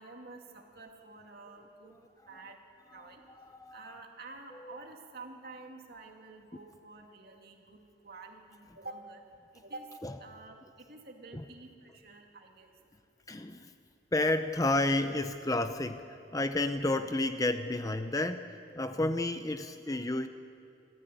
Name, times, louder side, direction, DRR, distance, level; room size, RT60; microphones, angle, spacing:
voice 1, 0.0-2.0 2.3-2.6 2.9-3.2 3.7-9.2 9.5-9.9 10.2-12.7, right 3 dB, 50° right, 2 dB, 2.5 m, -49 dB
voice 2, 13.3-13.7 14.1-20.3, left 2 dB, 15° left, 9 dB, 0.6 m, -31 dB
26.5 x 14.0 x 9.2 m, 2.7 s
head